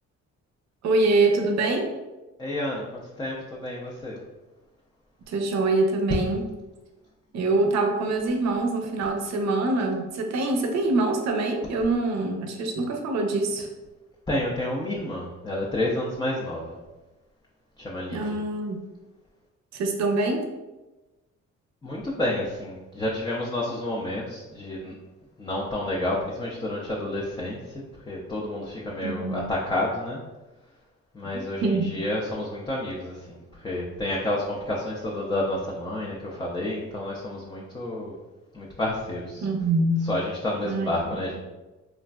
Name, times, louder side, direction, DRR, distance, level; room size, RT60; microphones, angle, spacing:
voice 1, 0.8-1.9 5.3-6.4 7.3-13.7 18.1-18.8 19.7-20.5 29.0-29.5 31.3-31.9 39.4-40.1 40.6-40.9, right 2 dB, 65° right, 4 dB, 0.6 m, -24 dB
voice 2, 2.4-4.2 14.3-16.8 17.8-18.4 21.8-25.0 25.4-30.2 31.1-38.1 38.5-39.5 40.0-41.4, left 1 dB, 15° left, -4 dB, 0.4 m, -30 dB
3.0 x 2.5 x 2.2 m, 1.1 s
cardioid pair, 90°, 30 cm